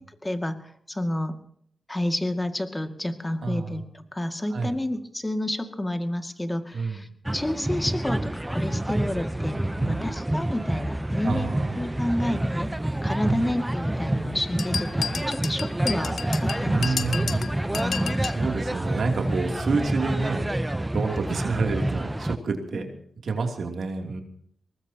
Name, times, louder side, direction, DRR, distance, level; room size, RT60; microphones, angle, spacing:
voice 1, 0.0-1.4 1.9-11.5 11.8-12.7 13.0-17.0 17.2-17.4 17.8-18.2 22.7-22.8, left 1 dB, 20° left, 7 dB, 2.2 m, -30 dB
voice 2, 3.4-3.8 4.5-4.8 6.7-7.0 9.8-10.1 11.2-11.8 13.2-13.4 16.6-17.4 17.7-17.8 18.3-20.4 20.9-22.9 23.2-24.2, right 4 dB, 75° right, 3 dB, 2.9 m, -28 dB
sound 1, 7.3-22.4, right 1 dB, 15° right, 0.7 m, -28 dB
sound 2, 14.6-18.4, left 6 dB, 80° left, 0.8 m, -32 dB
23.5 x 19.5 x 2.9 m, 0.66 s
cardioid pair, 55°, 0 cm